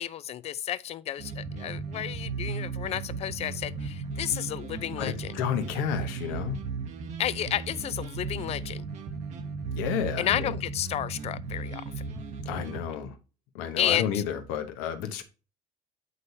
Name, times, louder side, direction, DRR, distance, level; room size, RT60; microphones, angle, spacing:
voice 1, 0.0-5.4 7.2-8.8 10.2-11.8 13.8-14.2, left 11 dB, 50° left, 0.4 m, -31 dB
sound 1, 1.2-12.8, right 4 dB, 60° right, 1.1 m, -36 dB
voice 2, 5.0-6.6 9.7-10.6 12.4-13.2 13.5-15.2, left 9 dB, 85° left, 1.0 m, -31 dB
8.0 x 5.3 x 2.7 m
supercardioid pair, 95°, 14 cm